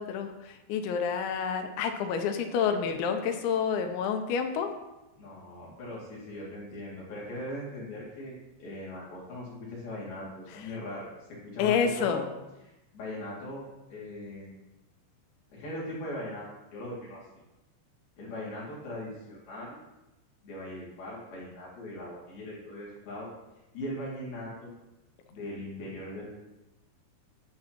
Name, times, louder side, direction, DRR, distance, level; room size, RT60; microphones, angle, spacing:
voice 1, 0.0-4.7 11.6-12.2, left 6 dB, 85° left, 6 dB, 2.9 m, -28 dB
voice 2, 5.2-11.1 11.4-12.3 12.6-13.6 13.9-14.5 15.5-17.4 18.2-19.8 20.4-23.3 23.7-24.7 25.3-26.3, left 1 dB, 55° left, -6 dB, 4.0 m, -40 dB
11.5 x 8.4 x 2.9 m, 1.0 s
omnidirectional pair, 5.4 m